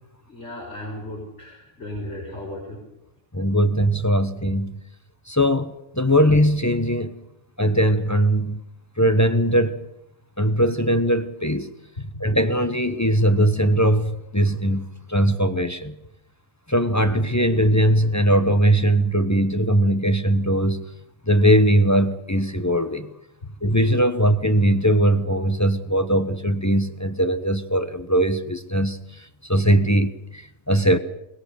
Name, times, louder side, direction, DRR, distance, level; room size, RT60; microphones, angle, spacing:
voice 1, 0.3-2.8 12.0-12.1, left 1 dB, 50° left, -3 dB, 6.1 m, -35 dB
voice 2, 3.3-4.8 5.3-7.2 7.6-8.6 9.0-9.8 10.4-11.7 12.2-15.9 16.7-20.8 21.3-23.1 23.6-29.0 29.5-30.4 30.7-31.0, equal, 15° left, 8 dB, 0.9 m, -20 dB
22.0 x 20.5 x 7.0 m, 0.84 s
omnidirectional pair, 1.5 m